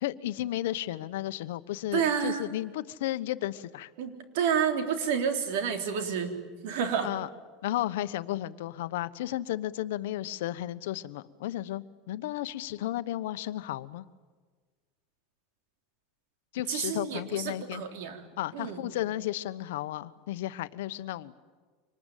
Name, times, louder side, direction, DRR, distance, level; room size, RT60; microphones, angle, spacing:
voice 1, 0.0-3.9 7.0-7.3 7.6-14.0 16.5-17.8 18.4-21.3, left 14 dB, 85° left, 13 dB, 1.0 m, -33 dB
voice 2, 1.9-2.5 4.0-6.3 6.6-7.1 16.7-18.2 18.5-18.8, right 7 dB, 75° right, 6 dB, 3.6 m, -29 dB
25.5 x 20.5 x 9.3 m, 1.4 s
supercardioid pair, 140°, 0 cm